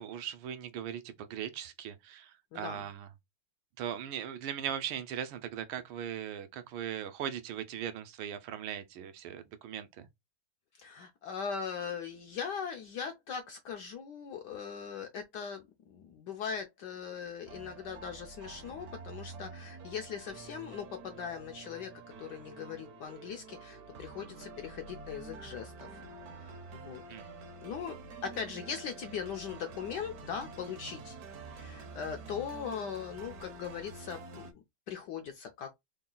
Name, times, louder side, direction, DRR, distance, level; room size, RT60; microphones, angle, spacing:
voice 1, 0.0-3.1 3.8-10.1 27.1-27.3, right 9 dB, 80° right, 1.4 m, -39 dB
voice 2, 2.5-2.8 10.7-21.9 22.2-26.0 26.3-27.3 27.6-28.0 28.2-31.2 31.5-35.7, left 7 dB, 75° left, 1.0 m, -40 dB
sound 1, 17.5-34.5, right 4 dB, 60° right, 1.0 m, -48 dB
4.0 x 2.3 x 3.7 m
omnidirectional pair, 2.3 m